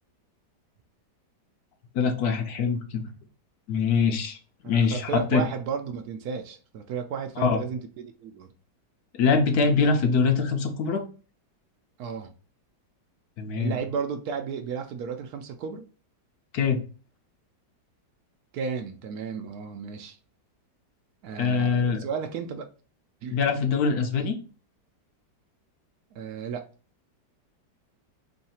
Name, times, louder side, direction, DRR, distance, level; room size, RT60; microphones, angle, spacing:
voice 1, 1.9-3.0 3.7-4.4 4.6-5.4 7.4-7.6 9.2-11.0 13.4-13.8 16.5-16.8 21.4-22.0 23.3-24.4, left 5 dB, 65° left, 1.1 m, -23 dB
voice 2, 4.7-8.5 12.0-12.3 13.6-15.9 18.5-20.2 21.2-22.7 23.2-23.4 26.1-26.7, right 6 dB, 70° right, 1.0 m, -33 dB
3.2 x 2.7 x 4.1 m
omnidirectional pair, 1.9 m